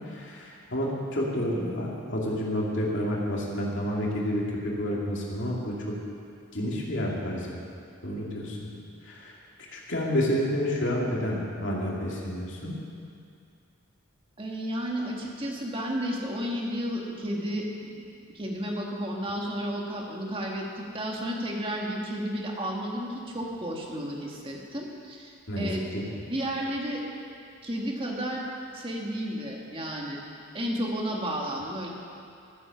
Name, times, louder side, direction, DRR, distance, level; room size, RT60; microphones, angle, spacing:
voice 1, 0.1-4.4 4.8-5.7 6.5-7.6 8.0-8.7 9.1-9.3 9.7-12.7 25.5-26.0, equal, 60° left, -4 dB, 2.7 m, -29 dB
voice 2, 14.4-18.0 18.3-25.9 26.3-27.0 27.6-28.4 28.7-30.2 30.5-31.9, equal, 25° right, -1 dB, 1.8 m, -32 dB
14.0 x 10.0 x 7.1 m, 2.5 s
head